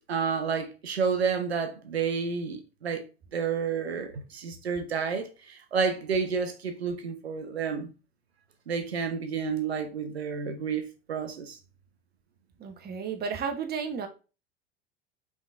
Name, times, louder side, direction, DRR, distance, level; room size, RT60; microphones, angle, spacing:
voice 1, 0.1-3.0 3.3-7.9 8.7-11.6, right 6 dB, 85° right, 0.6 m, -30 dB
voice 2, 12.6-14.1, right 6 dB, 30° right, 0.9 m, -33 dB
5.3 x 3.5 x 2.3 m
figure-of-eight pair, 75°, 31 cm